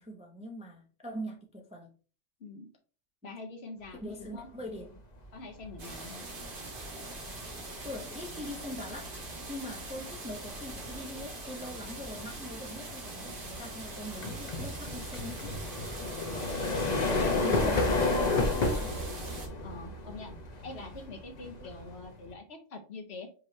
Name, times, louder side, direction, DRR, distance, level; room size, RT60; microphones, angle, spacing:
voice 1, 0.0-1.9 3.9-5.0 7.8-9.1 9.5-15.5 17.2-19.0 21.6-21.7, left 1 dB, 5° right, 1 dB, 0.5 m, -42 dB
voice 2, 2.4-2.7 3.2-4.5 5.3-6.2 16.3-16.7 17.2-17.6 19.6-20.3 20.6-23.3, left 3 dB, 60° left, 4 dB, 1.1 m, -44 dB
sound 1, 4.9-5.2 5.6-22.3, left 2 dB, 40° left, 0.8 m, -33 dB
sound 2, 5.8-19.5, right 2 dB, 45° right, 1.3 m, -43 dB
5.3 x 3.0 x 3.1 m, 0.38 s
omnidirectional pair, 1.3 m